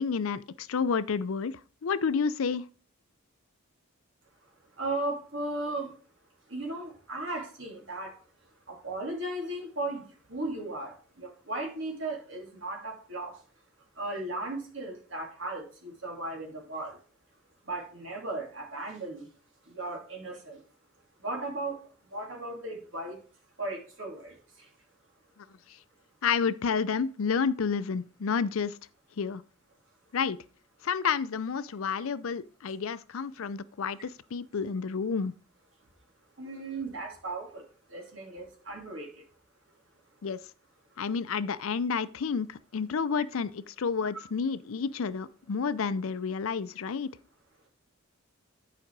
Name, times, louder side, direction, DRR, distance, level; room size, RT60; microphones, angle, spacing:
voice 1, 0.0-2.6 26.2-28.8 29.2-29.4 30.1-30.4 30.8-35.3 40.2-40.4 41.0-47.1, left 5 dB, 70° left, 0.5 m, -30 dB
voice 2, 4.8-5.9 6.5-8.1 8.7-10.0 10.3-13.3 14.0-17.0 17.7-19.3 19.7-20.6 21.2-21.8 22.1-23.2 23.6-24.3 36.4-37.6 37.9-39.1, right 2 dB, 60° right, 2.8 m, -36 dB
10.5 x 5.0 x 4.6 m
head